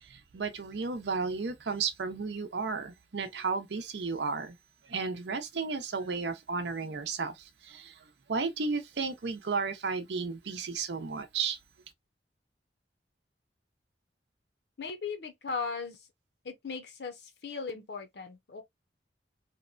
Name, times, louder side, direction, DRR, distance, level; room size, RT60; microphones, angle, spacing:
voice 1, 0.0-4.6 4.8-8.0 8.3-11.6, right 4 dB, 75° right, 0.6 m, -33 dB
voice 2, 14.8-16.0 16.4-18.6, left 4 dB, 65° left, 0.7 m, -37 dB
2.9 x 2.2 x 2.4 m
head